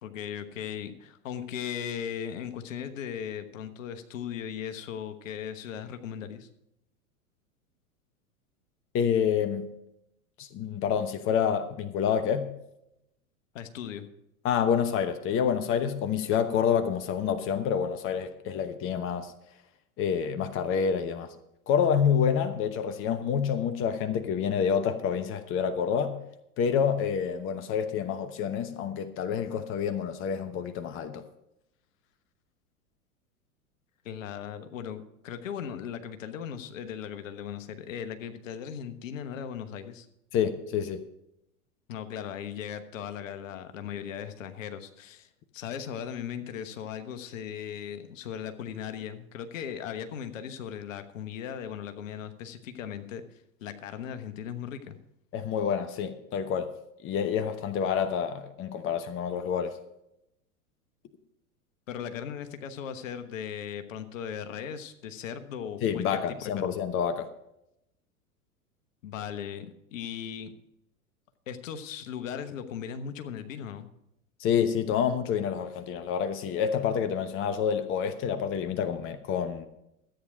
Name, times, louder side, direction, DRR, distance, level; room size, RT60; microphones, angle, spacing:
voice 1, 0.0-6.5 13.5-14.1 34.0-40.1 41.9-53.2 53.6-55.0 61.9-66.5 69.0-70.5 71.5-73.9, left 8 dB, 60° left, 1.3 m, -38 dB
voice 2, 8.9-9.7 10.4-12.5 14.4-19.3 20.0-21.3 21.7-26.2 26.6-31.2 40.3-41.0 55.3-56.7 57.0-59.7 65.8-67.3 74.4-79.7, left 7 dB, 30° left, 1.0 m, -28 dB
13.5 x 9.0 x 5.1 m
figure-of-eight pair, 95°, 44 cm